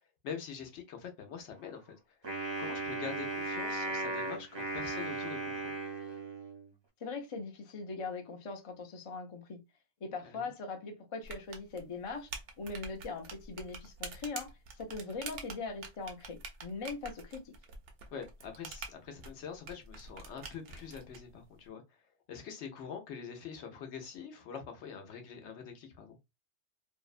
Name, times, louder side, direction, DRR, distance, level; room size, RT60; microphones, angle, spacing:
voice 1, 0.2-1.9 2.6-5.7 10.2-10.5 18.1-22.0 22.3-26.2, left 7 dB, 80° left, 0.9 m, -45 dB
Wind instrument woodwind instrument, 2.2-6.7, right 2 dB, 30° right, 0.5 m, -37 dB
voice 2, 7.0-9.6 10.0-12.3 12.6-14.5 14.8-17.5, left 4 dB, 45° left, 0.4 m, -41 dB
sound 1, 11.2-21.2, right 4 dB, 65° right, 0.8 m, -46 dB
2.7 x 2.1 x 2.4 m
omnidirectional pair, 1.2 m